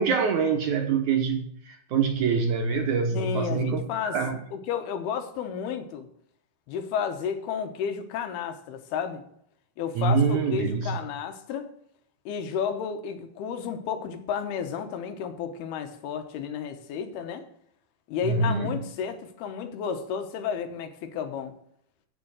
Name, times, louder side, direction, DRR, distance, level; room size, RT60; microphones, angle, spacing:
voice 1, 0.0-4.4 10.0-11.0 18.2-18.8, right 5 dB, 65° right, 2.0 m, -25 dB
voice 2, 3.1-4.2 4.5-6.1 6.7-9.2 9.8-11.7 12.3-17.4 18.1-21.5, left 7 dB, 80° left, 3.0 m, -32 dB
8.1 x 7.6 x 8.7 m
omnidirectional pair, 4.5 m